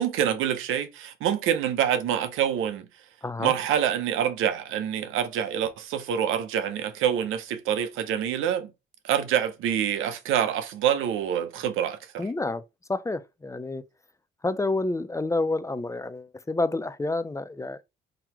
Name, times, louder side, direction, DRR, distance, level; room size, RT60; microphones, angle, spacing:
voice 1, 0.0-2.9 3.4-8.7 9.0-12.3, right 9 dB, 90° right, 0.7 m, -26 dB
voice 2, 3.2-3.5 12.2-12.6 12.9-13.8 14.4-17.8, left 2 dB, 15° left, 0.4 m, -29 dB
3.8 x 2.8 x 4.4 m
cardioid pair, 90°, 20 cm